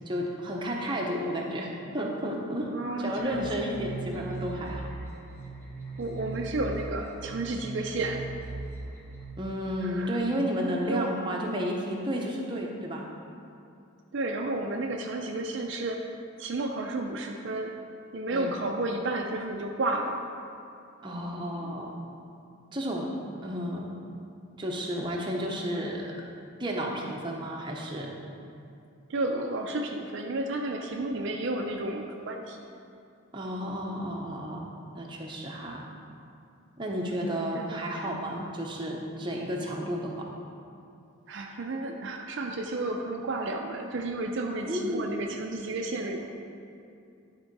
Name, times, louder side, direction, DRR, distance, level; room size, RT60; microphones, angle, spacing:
voice 1, 0.1-2.7 3.0-4.9 9.4-13.1 18.3-18.6 21.0-21.9 22.7-23.1 23.4-23.9 24.6-26.1 26.6-28.1 33.3-34.6 34.9-35.8 36.8-40.3 44.7-45.1, equal, 20° right, -1 dB, 0.7 m, -32 dB
voice 2, 2.7-3.5 6.0-8.2 9.8-10.2 10.9-11.1 14.1-16.0 16.4-17.7 18.1-20.2 29.1-32.6 37.5-37.8 41.3-46.3, right 2 dB, 55° right, 2 dB, 0.4 m, -32 dB
sound 1, 3.2-9.2, right 3 dB, 10° left, 0.9 m, -39 dB
11.0 x 3.7 x 4.6 m, 2.5 s
head